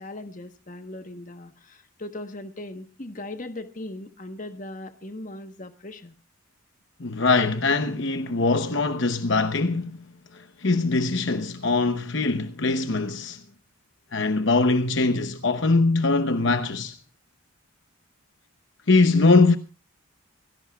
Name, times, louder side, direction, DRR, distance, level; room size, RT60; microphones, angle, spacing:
voice 1, 0.0-6.1, left 1 dB, 40° left, 1.2 m, -38 dB
voice 2, 7.0-10.0 10.3-13.4 14.1-17.0 18.9-19.6, left 3 dB, 60° left, 0.9 m, -22 dB
25.5 x 17.5 x 2.3 m
head